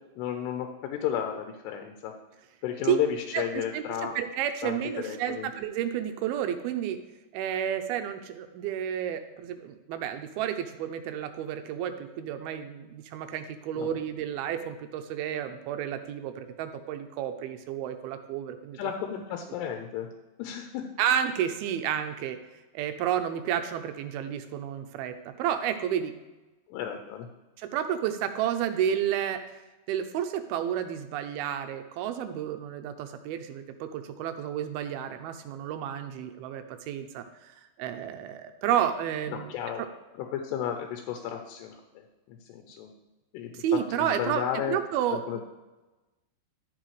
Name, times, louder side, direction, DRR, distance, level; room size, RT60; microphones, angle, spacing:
voice 1, 0.2-2.1 2.6-4.2 4.6-5.5 13.8-13.9 18.7-20.1 20.4-20.8 26.7-27.3 39.3-39.8 40.2-42.9 43.3-44.8 45.1-45.4, left 9 dB, 85° left, 4 dB, 2.9 m, -33 dB
voice 2, 3.7-7.0 7.3-18.8 21.0-22.4 22.7-26.1 27.6-29.4 29.9-39.9 43.6-44.4 44.7-45.4, right 9 dB, 80° right, 8 dB, 2.3 m, -31 dB
12.0 x 7.8 x 3.2 m, 1.1 s
omnidirectional pair, 4.9 m